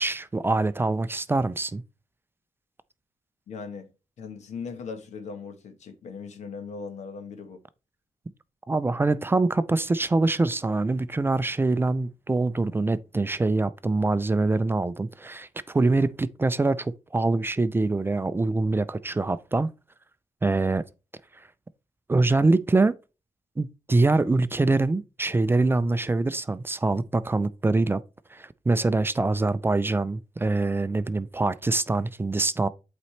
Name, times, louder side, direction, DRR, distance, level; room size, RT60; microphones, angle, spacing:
voice 1, 0.0-1.8 8.7-19.7 20.4-20.9 22.1-23.0 23.6-28.0 28.3-32.7, right 3 dB, 20° right, 0.4 m, -24 dB
voice 2, 3.5-3.9 4.2-7.6, left 5 dB, 90° left, 1.1 m, -38 dB
8.4 x 4.3 x 3.2 m
cardioid pair, 105°, 12 cm